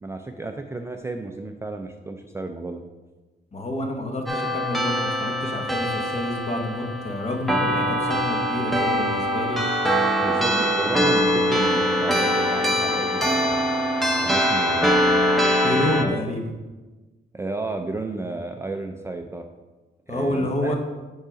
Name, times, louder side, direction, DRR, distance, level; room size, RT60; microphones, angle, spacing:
voice 1, 0.0-2.8 10.2-13.6 14.2-15.2 16.0-16.1 17.3-19.5 20.1-20.7, right 2 dB, 15° right, 4 dB, 0.4 m, -32 dB
voice 2, 3.5-9.6 15.4-16.4 20.1-20.8, left 1 dB, 35° left, 3 dB, 1.1 m, -28 dB
sound 1, 4.3-16.0, equal, ahead, 0.8 m, -23 dB
5.3 x 4.7 x 5.1 m, 1.2 s
cardioid pair, 115°, 18 cm